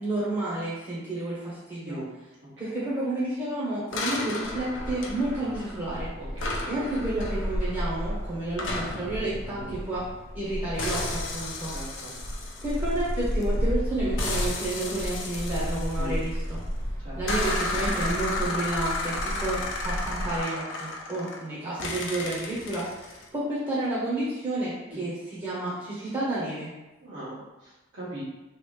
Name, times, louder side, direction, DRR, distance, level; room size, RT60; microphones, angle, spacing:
voice 1, 0.0-2.0 2.6-6.1 6.7-10.0 10.3-11.7 12.6-16.6 17.2-26.7, right 2 dB, 25° right, -9 dB, 0.9 m, -31 dB
sound 1, 3.9-6.0 6.4-10.4 10.8-13.5 14.2-16.6 17.3-21.5 21.8-23.3, left 2 dB, 75° left, 0.6 m, -34 dB
sound 2, 4.4-20.4, equal, 15° left, 0.3 m, -33 dB
voice 2, 6.2-6.6 9.6-9.7 11.7-12.1 16.0-16.2 17.0-17.2 24.9-25.0 27.0-28.2, right 1 dB, 70° right, -9 dB, 1.3 m, -40 dB
3.2 x 2.5 x 3.2 m, 1.0 s
head